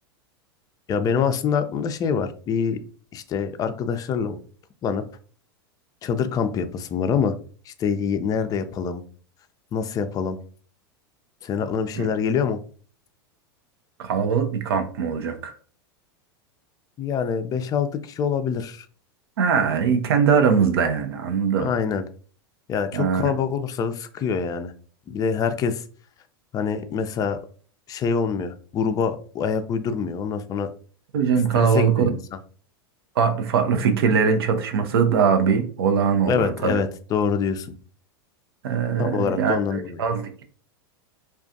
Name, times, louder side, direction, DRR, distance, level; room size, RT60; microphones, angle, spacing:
voice 1, 0.9-2.8 3.1-4.4 4.8-5.0 6.0-7.3 7.7-9.0 9.7-10.4 11.4-12.6 17.0-18.9 21.6-22.0 22.7-24.7 25.1-25.8 26.5-27.4 27.9-30.7 31.5-32.2 36.3-37.7 39.0-40.0, left 6 dB, 30° left, 9 dB, 0.4 m, -25 dB
voice 2, 14.0-15.6 19.4-21.7 22.9-23.4 31.1-32.1 33.2-36.8 38.6-40.4, right 6 dB, 75° right, 6 dB, 0.5 m, -21 dB
2.4 x 2.3 x 2.5 m, 0.42 s
hypercardioid pair, 100°, 13 cm